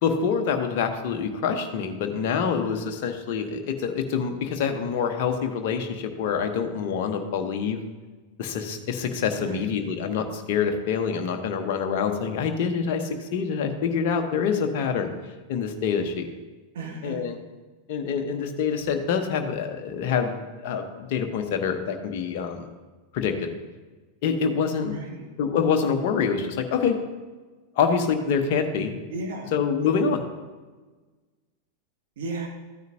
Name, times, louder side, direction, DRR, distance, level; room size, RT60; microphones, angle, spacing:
voice 1, 0.0-7.8 8.4-15.1 15.5-16.3 17.0-17.4 17.9-22.7 23.1-23.5 24.2-25.0 25.4-27.0 27.8-29.0 29.5-30.2, left 6 dB, 50° left, 5 dB, 1.0 m, -26 dB
voice 2, 9.3-9.9 16.7-17.2 24.9-25.3 29.1-29.5 32.2-32.5, right 2 dB, 60° right, 1 dB, 1.9 m, -35 dB
14.0 x 9.3 x 2.7 m, 1.3 s
figure-of-eight pair, 90°, 0 cm